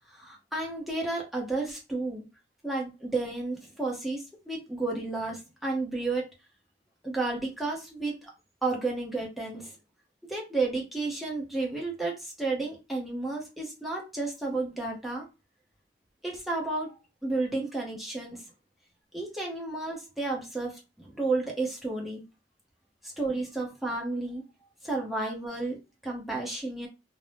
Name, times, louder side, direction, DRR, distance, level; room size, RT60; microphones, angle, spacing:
voice 1, 0.1-2.2 2.6-6.2 7.0-8.3 8.6-9.7 10.3-15.2 16.2-18.4 19.1-22.2 23.0-24.4 24.8-26.9, right 3 dB, ahead, -3 dB, 0.8 m, -32 dB
2.7 x 2.1 x 3.3 m, 0.28 s
head